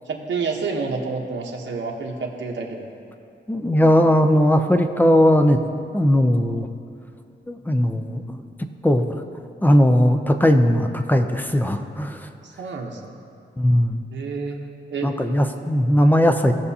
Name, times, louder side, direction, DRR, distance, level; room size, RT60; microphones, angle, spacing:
voice 1, 0.1-2.9 12.4-13.1 14.1-14.6 14.9-15.1, right 4 dB, 85° right, 0 dB, 1.0 m, -29 dB
voice 2, 3.5-5.6 5.9-6.7 7.5-8.5 8.8-9.1 9.6-12.3 13.6-14.0 15.0-16.5, equal, 10° left, 6 dB, 0.5 m, -18 dB
18.0 x 6.6 x 2.8 m, 2.5 s
wide cardioid pair, 150°, 19 cm